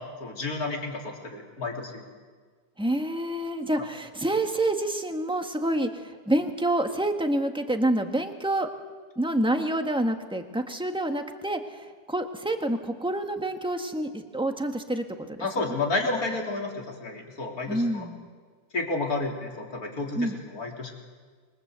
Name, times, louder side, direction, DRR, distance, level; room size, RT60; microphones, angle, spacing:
voice 1, 0.2-2.0 15.4-18.1 18.7-20.9, left 3 dB, 65° left, 1 dB, 4.1 m, -31 dB
voice 2, 2.8-8.7 9.2-11.6 12.1-15.4 17.7-18.1 20.1-20.3, right 1 dB, 5° right, 5 dB, 1.6 m, -27 dB
27.5 x 22.5 x 8.2 m, 1.5 s
omnidirectional pair, 1.7 m